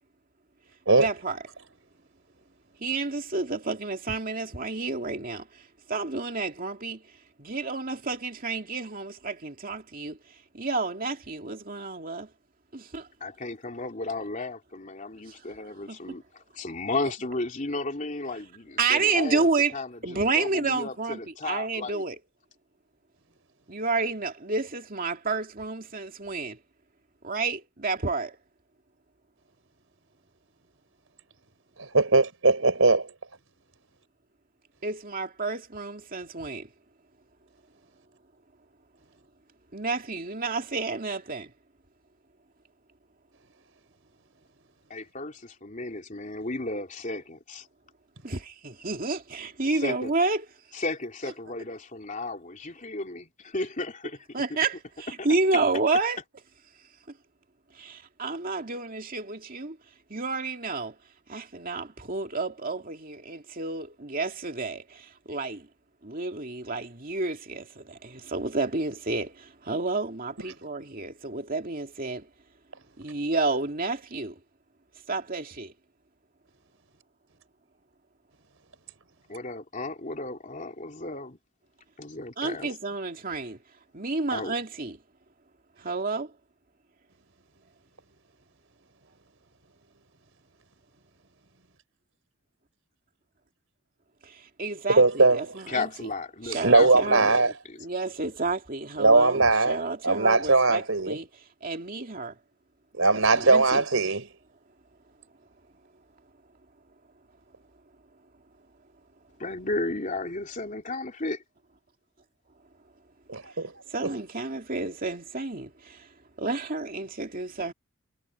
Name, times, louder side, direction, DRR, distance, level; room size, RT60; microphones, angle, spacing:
voice 1, 1.0-1.4 2.8-5.4 5.9-7.0 7.4-10.2 10.5-12.3 12.7-13.0 15.9-16.0 18.8-19.7 20.0-22.2 23.7-26.6 27.2-28.3 34.8-36.7 39.7-41.5 48.2-50.5 54.3-56.2 57.8-59.8 60.1-60.9 61.3-64.8 65.3-65.6 66.0-69.3 69.7-72.2 73.0-74.3 75.1-75.7 82.4-83.6 83.9-85.0 85.8-86.3 94.6-96.1 96.4-97.3 97.8-101.3 101.6-102.3 103.1-103.9 113.9-115.7 116.4-117.7, right 3 dB, 40° right, 2.5 m, -30 dB
voice 2, 13.2-19.5 19.7-22.0 44.9-47.7 49.8-50.1 50.7-54.3 55.2-55.3 79.3-81.4 82.0-82.7 84.3-84.5 95.7-97.8 109.4-111.4, left 2 dB, 35° left, 3.2 m, -34 dB
voice 3, 31.8-33.1 95.0-95.4 96.6-97.5 99.0-101.2 103.0-104.3 113.3-113.7 114.0-114.1, right 3 dB, 70° right, 4.2 m, -20 dB
head